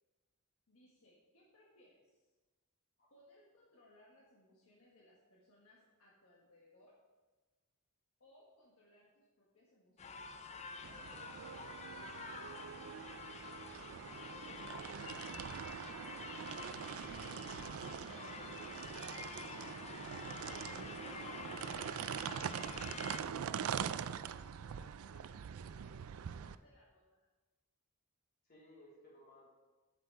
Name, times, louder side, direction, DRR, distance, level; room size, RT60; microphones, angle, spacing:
voice 1, 0.7-2.3 3.1-6.9 8.2-11.0 17.0-17.7 18.2-18.5 20.4-21.5 22.7-27.2, left 1 dB, 75° left, -4 dB, 1.6 m, -66 dB
sound 1, 10.0-23.2, left 5 dB, 30° left, 0.5 m, -49 dB
sound 2, 10.8-26.6, right 8 dB, 75° right, 0.4 m, -43 dB
voice 2, 14.3-15.3 20.5-21.1 28.4-29.5, equal, 45° left, -5 dB, 3.3 m, -61 dB
8.5 x 8.1 x 4.6 m, 1.2 s
head